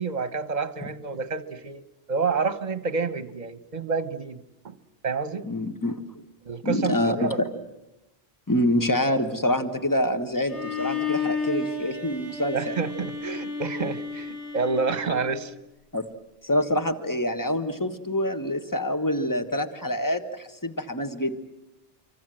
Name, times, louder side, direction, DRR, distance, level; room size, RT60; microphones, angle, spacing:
voice 1, 0.0-1.8 2.1-4.4 4.6-4.7 5.0-5.5 6.4-7.4 12.5-15.5, right 4 dB, 45° right, 13 dB, 1.2 m, -28 dB
voice 2, 5.4-6.0 6.6-7.5 8.5-12.7 15.9-16.1 16.4-21.4, left 1 dB, 20° left, 7 dB, 1.5 m, -26 dB
Bowed string instrument, 10.5-15.5, left 4 dB, 60° left, 4.1 m, -32 dB
25.5 x 25.0 x 7.7 m, 0.94 s
omnidirectional pair, 1.0 m